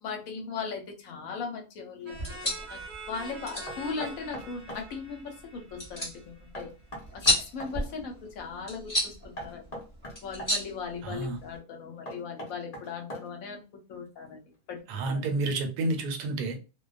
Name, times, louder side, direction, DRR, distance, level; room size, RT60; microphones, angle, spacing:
voice 1, 0.0-2.8 3.1-6.7 7.1-9.7 10.2-14.4 14.7-14.8 15.0-15.2, left 5 dB, 65° left, 0.9 m, -38 dB
sound 1, 2.0-6.6, right 2 dB, 65° right, 0.5 m, -45 dB
sound 2, 2.1-11.6, left 1 dB, 15° left, 0.8 m, -34 dB
Knock, 3.7-4.9 6.5-7.8 9.4-10.5 12.1-13.5, equal, 45° left, 0.5 m, -41 dB
voice 2, 11.0-11.4 14.9-16.6, right 2 dB, 85° right, 1.2 m, -30 dB
2.5 x 2.2 x 2.3 m
omnidirectional pair, 1.7 m